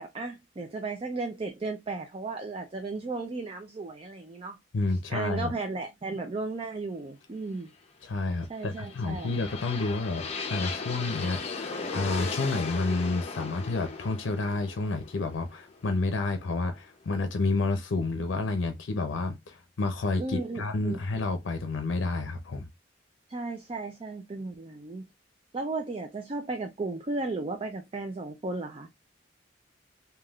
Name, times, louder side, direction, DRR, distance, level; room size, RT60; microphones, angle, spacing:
voice 1, 0.0-4.6 5.1-7.7 8.5-9.3 20.2-21.0 23.3-25.1 25.5-28.9, right 3 dB, 30° right, 0.4 m, -35 dB
voice 2, 4.7-5.5 8.0-22.7, left 3 dB, 80° left, 0.5 m, -30 dB
sound 1, 8.6-16.5, left 4 dB, 35° left, 0.6 m, -37 dB
3.4 x 2.3 x 2.3 m
head